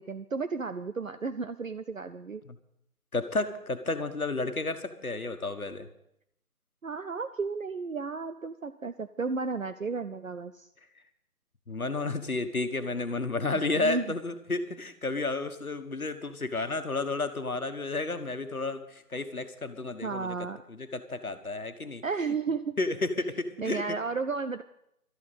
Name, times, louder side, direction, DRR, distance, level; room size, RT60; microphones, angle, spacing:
voice 1, 0.0-2.4 6.8-10.7 13.5-14.1 20.0-20.6 22.0-22.7 23.6-24.6, right 4 dB, 60° right, 10 dB, 0.7 m, -33 dB
voice 2, 3.1-5.9 11.7-20.3 20.7-22.0 22.8-24.0, left 3 dB, 65° left, 8 dB, 1.5 m, -32 dB
13.0 x 8.7 x 8.2 m, 0.77 s
figure-of-eight pair, 160°, 46 cm